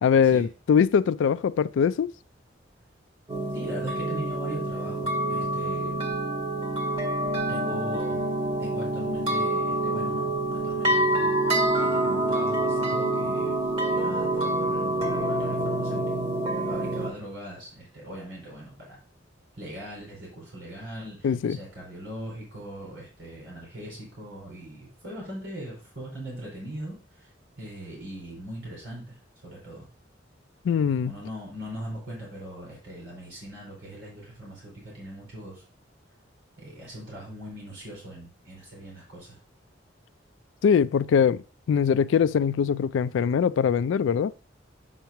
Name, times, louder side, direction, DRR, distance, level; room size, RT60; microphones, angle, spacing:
voice 1, 0.0-2.1 21.2-21.6 30.7-31.2 40.6-41.4 41.7-44.4, left 7 dB, 80° left, 0.3 m, -22 dB
sound 1, 3.3-17.1, right 1 dB, 30° right, 1.9 m, -26 dB
voice 2, 3.5-6.0 7.5-8.3 8.6-16.2 16.7-19.0 19.6-27.3 27.6-29.2 29.4-29.9 31.0-35.6 36.6-39.4, equal, 85° right, 3.2 m, -40 dB
8.0 x 3.0 x 5.7 m
head